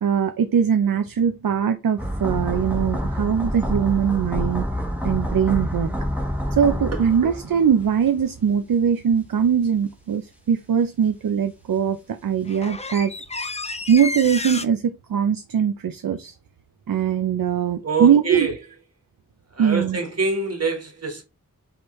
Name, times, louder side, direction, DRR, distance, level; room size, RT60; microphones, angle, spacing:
voice 1, 0.0-4.6 5.0-5.9 6.5-13.1 13.9-16.3 16.9-18.5 19.6-20.0, right 7 dB, 85° right, 0.5 m, -21 dB
sound 1, 2.0-8.1 8.3-8.4, equal, 5° right, 1.1 m, -27 dB
sound 2, 8.1-8.2 11.8-11.9 12.2-14.7, left 3 dB, 20° left, 0.5 m, -31 dB
voice 2, 17.8-18.5 19.5-21.2, right 4 dB, 50° right, 1.4 m, -25 dB
4.7 x 3.2 x 3.0 m
wide cardioid pair, 45°, 33 cm